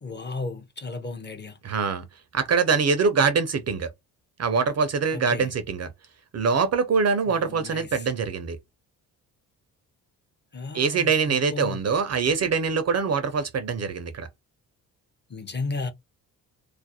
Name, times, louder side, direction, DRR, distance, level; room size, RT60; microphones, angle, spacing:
voice 1, 0.0-1.6 5.1-5.5 7.3-8.1 10.5-11.8 15.3-15.9, left 3 dB, 25° left, 0.6 m, -34 dB
voice 2, 1.6-2.0 2.3-3.9 4.4-5.9 6.3-8.6 10.7-14.3, right 5 dB, 35° right, 0.5 m, -24 dB
2.4 x 2.0 x 2.7 m
hypercardioid pair, 50°, 45 cm